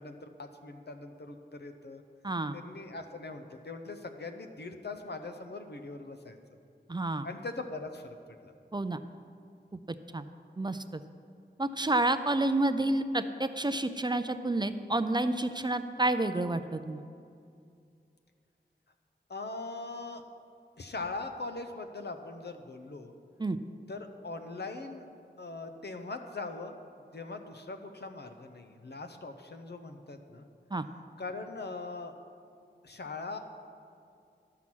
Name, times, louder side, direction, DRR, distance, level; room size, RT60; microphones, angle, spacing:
voice 1, 0.0-2.0 2.5-6.4 7.2-8.2 8.4-8.5 19.3-20.2 20.8-23.1 23.9-25.1 25.4-26.8 27.1-30.5 31.2-32.1 32.8-33.4, left 3 dB, 65° left, 7 dB, 0.8 m, -41 dB
voice 2, 2.2-2.6 6.9-7.3 8.7-9.0 10.1-10.2 10.6-10.8 11.6-17.0 23.4-23.6 30.7-30.8, right 2 dB, 25° right, 10 dB, 0.4 m, -29 dB
13.0 x 5.8 x 6.1 m, 2.4 s
wide cardioid pair, 65°, 18 cm